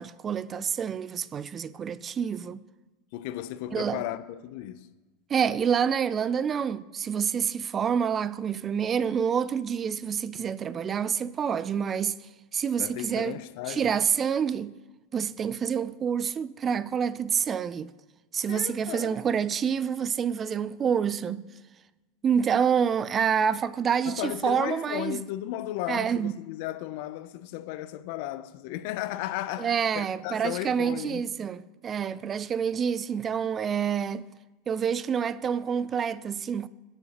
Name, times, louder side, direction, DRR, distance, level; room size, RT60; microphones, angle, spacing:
voice 1, 0.0-2.6 3.7-4.0 5.3-12.2 12.5-13.4 13.7-14.8 15.1-17.9 18.3-21.5 22.2-25.2 25.9-26.4 29.6-34.3 34.7-36.7, right 7 dB, 30° right, 0.3 m, -27 dB
voice 2, 3.1-4.9 12.8-13.9 18.5-19.2 24.1-31.3, left 14 dB, 65° left, 0.5 m, -35 dB
16.5 x 6.5 x 2.9 m
hypercardioid pair, 100°, 0 cm